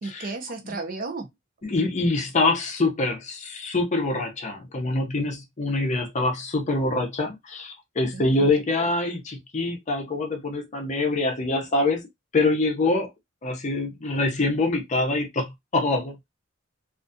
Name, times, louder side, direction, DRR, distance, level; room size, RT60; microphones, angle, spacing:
voice 1, 0.0-1.3 8.1-8.6, right 3 dB, 45° right, 0.6 m, -34 dB
voice 2, 1.6-12.0 12.3-13.1 13.4-16.3, left 2 dB, 35° left, 0.6 m, -25 dB
2.4 x 2.3 x 2.5 m
head